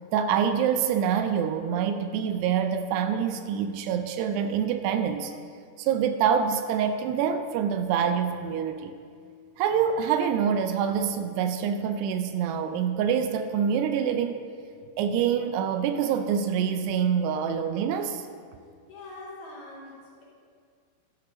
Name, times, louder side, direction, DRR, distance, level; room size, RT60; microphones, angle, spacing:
voice 1, 0.1-5.3 5.8-8.9 9.6-14.5 15.0-18.3, right 7 dB, 85° right, 8 dB, 2.6 m, -26 dB
voice 2, 18.9-20.2, left 2 dB, 50° left, -7 dB, 3.6 m, -43 dB
13.0 x 5.4 x 6.2 m, 2.1 s
omnidirectional pair, 4.9 m